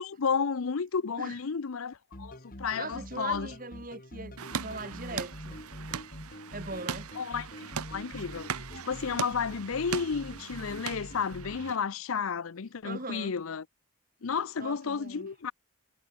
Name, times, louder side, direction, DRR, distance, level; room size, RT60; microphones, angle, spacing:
voice 1, 0.0-3.5 7.2-8.5 8.9-13.7 14.2-15.5, left 6 dB, 70° left, 0.6 m, -32 dB
sound 1, 2.1-11.7, left 1 dB, 40° left, 3.7 m, -45 dB
voice 2, 2.8-5.6 6.5-7.1 12.8-13.4 14.6-15.3, right 3 dB, 40° right, 3.3 m, -40 dB
sound 2, 4.4-11.8, right 7 dB, 85° right, 0.8 m, -39 dB
head